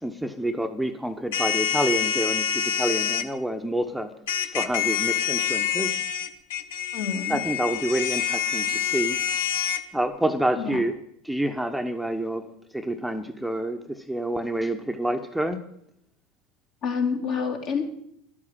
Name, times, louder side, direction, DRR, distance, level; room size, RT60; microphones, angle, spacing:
voice 1, 0.0-4.1 4.5-6.0 7.3-9.2 9.9-10.9 11.2-15.6, right 1 dB, ahead, 5 dB, 1.0 m, -28 dB
sound 1, 1.3-3.3 4.3-9.8, left 9 dB, 75° left, 1.0 m, -26 dB
voice 2, 6.9-7.4 10.5-10.8 16.8-17.8, left 6 dB, 55° left, 1 dB, 3.1 m, -27 dB
12.0 x 8.6 x 8.6 m, 0.72 s
hypercardioid pair, 85°, 0 cm